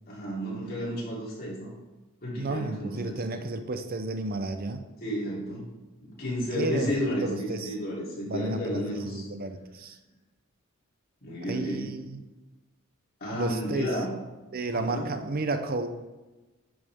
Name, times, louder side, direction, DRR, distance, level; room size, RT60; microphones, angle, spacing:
voice 1, 0.1-1.7 2.2-3.2 5.0-5.6 6.0-9.2 11.2-11.9 13.2-14.1 14.7-15.1, equal, 45° left, -5 dB, 3.3 m, -32 dB
voice 2, 2.4-4.8 6.5-7.7 8.2-10.0 11.4-12.2 13.3-13.9 14.5-16.1, right 2 dB, 45° right, 8 dB, 0.7 m, -32 dB
10.5 x 7.0 x 3.6 m, 1.1 s
head